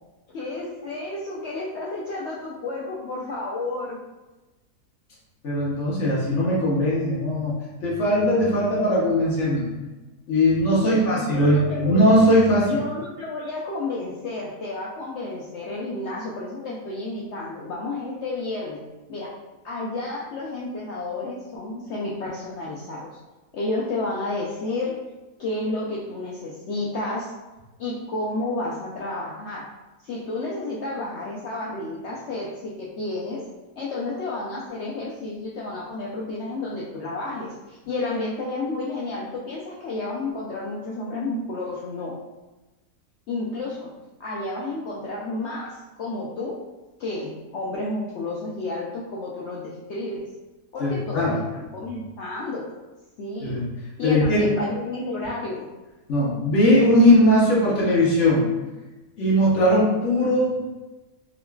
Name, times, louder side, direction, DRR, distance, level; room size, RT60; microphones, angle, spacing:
voice 1, 0.3-4.0 10.9-12.0 12.5-18.8 19.1-19.3 19.6-23.2 23.5-25.0 25.4-27.3 27.8-29.7 30.0-33.4 33.8-42.2 43.3-43.9 44.2-46.5 47.0-50.3 50.7-52.7 53.2-53.6 54.0-55.6, left 2 dB, 70° left, -5 dB, 0.6 m, -31 dB
voice 2, 5.4-7.5 7.8-9.7 10.3-12.8 50.8-51.4 53.4-53.7 54.0-54.4 56.1-58.4 59.2-60.6, left 1 dB, 55° left, -6 dB, 1.1 m, -19 dB
3.7 x 2.9 x 2.2 m, 1.1 s
omnidirectional pair, 1.6 m